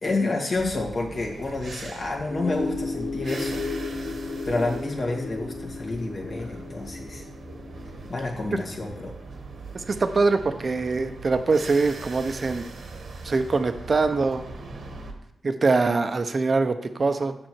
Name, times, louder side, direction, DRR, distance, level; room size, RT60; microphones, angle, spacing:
voice 1, 0.0-3.6 4.5-7.2 8.1-9.1, left 2 dB, 55° left, -1 dB, 1.9 m, -29 dB
sound 1, 0.6-15.1, right 3 dB, 70° right, 1.4 m, -41 dB
sound 2, 2.3-10.0, left 3 dB, 80° left, 1.9 m, -34 dB
voice 2, 9.7-12.7 13.2-14.4 15.4-17.3, right 3 dB, 45° right, 8 dB, 0.8 m, -23 dB
7.6 x 6.1 x 4.6 m, 0.86 s
cardioid pair, 75°, 0 cm